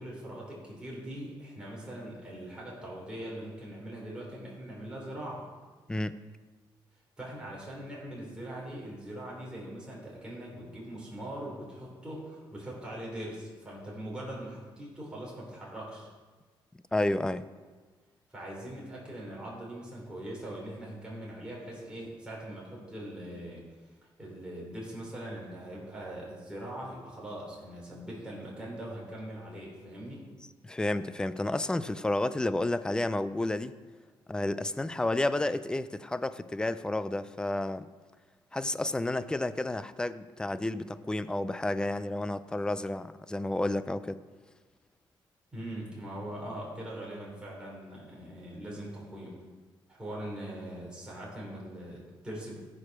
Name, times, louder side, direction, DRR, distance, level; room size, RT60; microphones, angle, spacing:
voice 1, 0.0-5.4 7.2-16.1 18.3-23.6 24.2-30.2 45.5-49.3 49.9-52.6, right 1 dB, 10° right, -5 dB, 3.2 m, -41 dB
voice 2, 5.9-6.2 16.9-17.5 30.6-33.7 34.3-37.9 38.5-44.2, left 2 dB, 10° left, 13 dB, 0.4 m, -31 dB
14.0 x 4.9 x 5.9 m, 1.4 s
cardioid pair, 130°, 9 cm